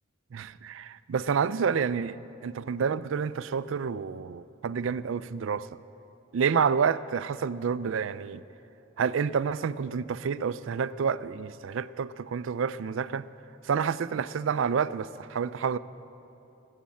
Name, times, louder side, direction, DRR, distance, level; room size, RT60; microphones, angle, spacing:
voice 1, 0.3-2.2 2.4-5.7 6.3-8.4 9.0-13.3 13.6-15.8, right 6 dB, 60° right, 16 dB, 0.4 m, -29 dB
19.5 x 7.4 x 8.5 m, 2.9 s
head